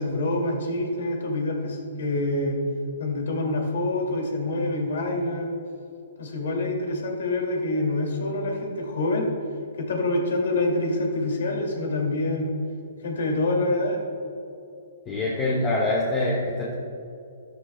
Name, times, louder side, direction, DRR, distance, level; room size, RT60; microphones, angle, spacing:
voice 1, 0.0-2.6 3.0-5.5 6.2-9.3 9.8-12.6 13.0-14.0, left 2 dB, 65° left, 1 dB, 2.3 m, -26 dB
voice 2, 15.1-16.7, left 2 dB, 25° left, -4 dB, 1.6 m, -25 dB
13.5 x 11.0 x 2.2 m, 2.6 s
hypercardioid pair, 125°, 0 cm